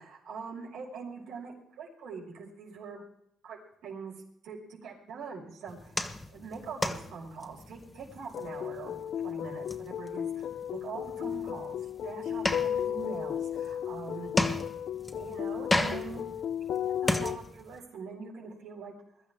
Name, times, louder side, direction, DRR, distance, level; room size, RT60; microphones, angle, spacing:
voice 1, 0.0-3.1 3.4-4.1 4.4-6.1 6.3-14.3 15.1-16.2 16.8-18.9, right 5 dB, 85° right, -1 dB, 6.1 m, -43 dB
sound 1, 5.7-17.8, left 2 dB, 15° left, 1.5 m, -35 dB
sound 2, 8.3-17.4, left 9 dB, 70° left, 0.5 m, -34 dB
22.5 x 13.5 x 3.7 m, 0.75 s
cardioid pair, 90°, 0 cm